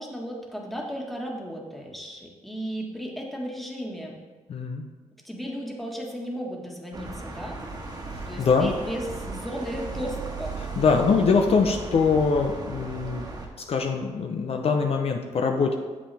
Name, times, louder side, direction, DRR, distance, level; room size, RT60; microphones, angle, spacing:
voice 1, 0.0-4.1 5.2-7.6 8.3-10.5, equal, ahead, -2 dB, 1.6 m, -35 dB
voice 2, 4.5-4.8 8.4-8.7 10.8-13.3 13.7-15.7, left 5 dB, 55° left, 3 dB, 0.7 m, -23 dB
sound 1, 6.9-13.5, right 3 dB, 35° right, 1.5 m, -36 dB
8.6 x 7.4 x 3.4 m, 1.3 s
cardioid pair, 95°, 12 cm